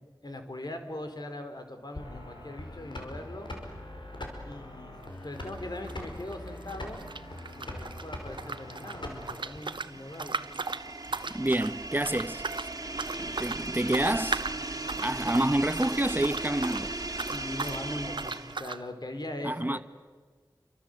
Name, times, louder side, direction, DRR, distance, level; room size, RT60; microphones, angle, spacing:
voice 1, 0.2-3.5 4.4-7.0 7.6-10.5 10.7-11.5 17.3-19.8, left 1 dB, 60° left, 4.3 m, -41 dB
sound 1, 2.0-9.6, left 1 dB, 75° left, 5.4 m, -42 dB
sound 2, 5.0-5.2 5.5-8.0 8.3-16.9 17.1-17.8 18.2-18.8, right 4 dB, 85° right, 1.0 m, -37 dB
sound 3, 6.8-18.8, right 2 dB, 50° right, 2.4 m, -38 dB
voice 2, 11.3-12.4 13.4-14.4 15.0-17.0 19.4-19.8, right 1 dB, 25° right, 1.1 m, -28 dB
29.5 x 24.5 x 8.0 m
wide cardioid pair, 40°, 8 cm